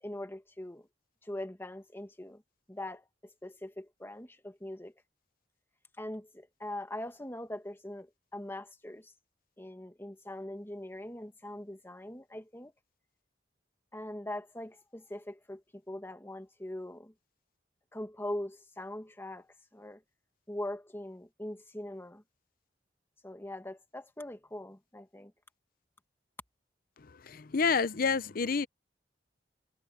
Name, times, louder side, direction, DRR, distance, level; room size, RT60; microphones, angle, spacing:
voice 1, 0.0-0.9 1.2-2.4 2.7-3.0 3.4-4.9 6.0-9.1 9.6-12.7 13.9-17.1 17.9-20.0 20.5-22.2 23.2-25.3, left 1 dB, 15° left, 1.7 m, -42 dB
voice 2, 27.3-28.7, left 5 dB, 55° left, 0.6 m, -28 dB
head